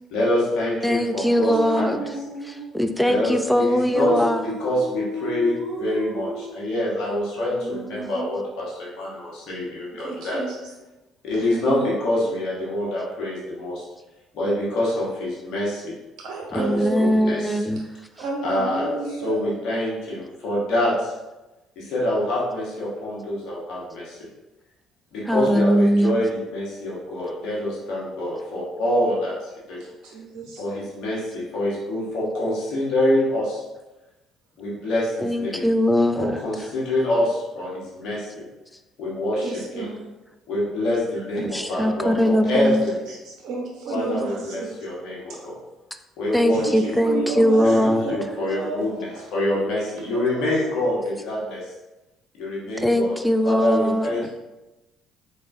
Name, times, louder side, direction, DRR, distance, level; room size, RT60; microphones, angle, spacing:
voice 1, 0.1-2.0 3.1-4.1 4.6-5.5 5.8-10.4 11.2-13.8 14.3-15.9 16.5-17.6 18.4-21.1 21.8-24.3 25.1-29.8 30.6-33.6 34.6-35.7 36.2-38.5 39.0-39.8 40.5-42.9 43.9-45.6 46.2-46.6 47.3-47.5 47.8-51.7 52.4-53.1 53.4-54.3, left 1 dB, 65° left, -5 dB, 1.2 m, -26 dB
voice 2, 0.8-2.0 2.7-4.4 16.5-17.8 25.3-26.2 35.2-36.4 41.4-42.8 46.3-48.2 52.8-54.1, equal, 5° left, 7 dB, 0.4 m, -21 dB
voice 3, 1.4-2.8 3.9-6.6 7.5-8.4 10.0-10.7 11.3-12.0 16.2-17.1 18.1-19.4 29.8-30.6 39.4-40.1 41.1-41.2 42.5-42.6 43.1-44.8 46.5-51.1 53.8-53.9, right 2 dB, 65° right, -2 dB, 0.7 m, -32 dB
4.1 x 3.3 x 2.7 m, 1.0 s
hypercardioid pair, 60°, 0 cm